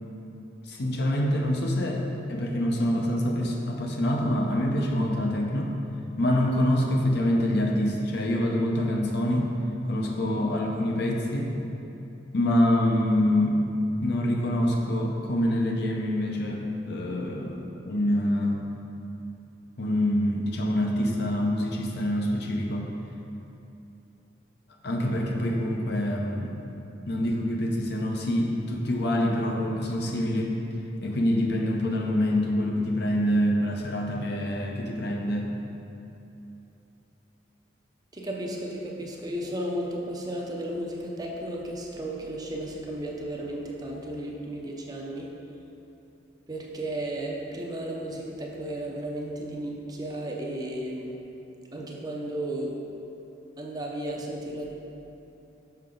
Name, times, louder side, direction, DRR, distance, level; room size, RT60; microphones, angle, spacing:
voice 1, 0.6-2.0 2.3-5.7 6.2-9.5 9.9-11.5 12.3-13.6 14.0-18.6 19.8-22.9 24.8-26.6 27.1-30.6 31.0-35.5, left 1 dB, 60° left, 0 dB, 0.7 m, -26 dB
voice 2, 38.1-45.3 46.5-51.1 51.7-52.7 53.6-54.7, right 1 dB, 20° right, -1 dB, 0.6 m, -34 dB
5.8 x 5.7 x 3.8 m, 2.9 s
head